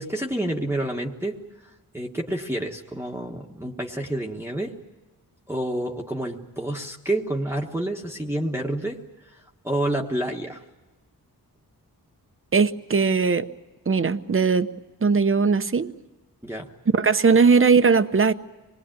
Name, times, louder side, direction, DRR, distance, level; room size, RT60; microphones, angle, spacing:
voice 1, 0.0-1.4 1.6-4.8 5.5-9.0 9.2-10.6 16.4-16.7, right 1 dB, 5° right, -1 dB, 1.3 m, -29 dB
voice 2, 12.5-13.5 13.9-14.7 15.0-15.9 16.9-18.3, right 5 dB, 35° right, 11 dB, 0.9 m, -19 dB
26.0 x 20.5 x 9.1 m, 1.2 s
wide cardioid pair, 155°, 37 cm